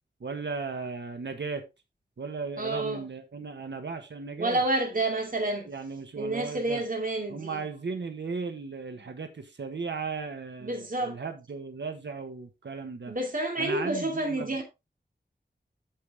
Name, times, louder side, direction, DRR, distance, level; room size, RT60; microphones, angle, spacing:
voice 1, 0.2-1.6 2.2-4.6 5.6-6.8 7.3-13.1 13.6-14.6, right 4 dB, 80° right, 1.4 m, -36 dB
voice 2, 2.6-3.0 4.4-5.7 6.2-7.6 10.6-11.2 13.1-14.6, right 2 dB, 50° right, 2.7 m, -29 dB
9.3 x 6.7 x 3.4 m
wide cardioid pair, 65°, 18 cm